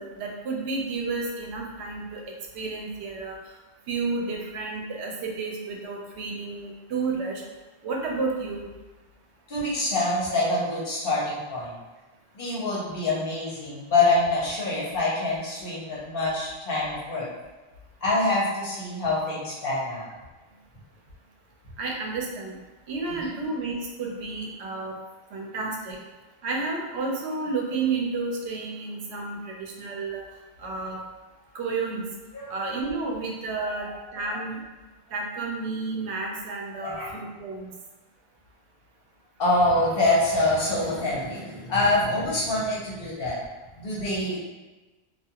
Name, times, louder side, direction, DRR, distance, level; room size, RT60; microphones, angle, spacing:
voice 1, 0.0-2.2 2.5-3.4 3.9-7.4 7.8-8.7 21.8-22.6 22.9-25.0 25.3-26.0 26.4-30.2 30.6-31.0 31.5-32.1 32.5-34.6 35.1-37.7, right 3 dB, 85° right, 0 dB, 0.8 m, -31 dB
voice 2, 9.5-11.7 12.3-17.3 18.0-20.1 23.1-23.2 32.3-32.6 33.6-33.8 34.3-34.4 36.8-37.1 39.4-43.4 43.8-44.4, left 2 dB, 60° left, -6 dB, 1.0 m, -25 dB
2.3 x 2.3 x 2.8 m, 1.2 s
omnidirectional pair, 1.1 m